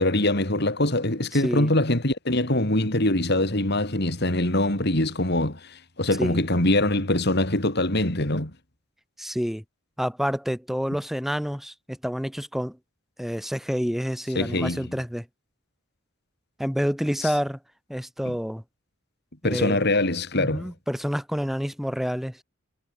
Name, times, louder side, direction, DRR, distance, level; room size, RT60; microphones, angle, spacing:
voice 1, 0.0-8.5 14.4-14.9 17.2-17.3 18.3-18.4 19.4-20.7, left 1 dB, 55° left, 4.0 m, -23 dB
voice 2, 1.3-1.7 6.2-6.4 9.2-9.6 10.0-12.8 13.2-15.2 16.6-17.6 17.9-18.6 19.4-19.8 20.4-22.4, equal, ahead, 4.1 m, -28 dB
head